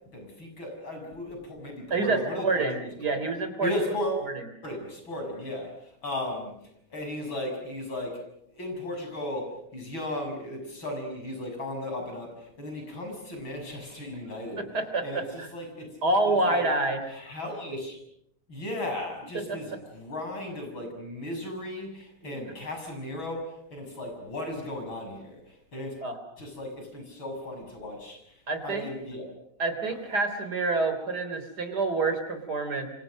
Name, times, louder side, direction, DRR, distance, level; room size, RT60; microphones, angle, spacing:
voice 1, 0.1-3.2 3.6-4.3 4.6-6.5 6.9-8.2 8.5-14.7 15.0-15.9 16.3-16.6 17.1-18.0 18.5-25.9 26.4-29.2, left 1 dB, 70° left, 4 dB, 7.5 m, -36 dB
voice 2, 1.9-3.7 14.7-15.5 16.0-17.0 19.3-19.6 22.2-22.4 26.0-26.2 28.5-28.9 29.6-32.9, right 3 dB, 50° right, 8 dB, 4.1 m, -27 dB
29.0 x 25.0 x 6.5 m, 0.73 s
omnidirectional pair, 2.3 m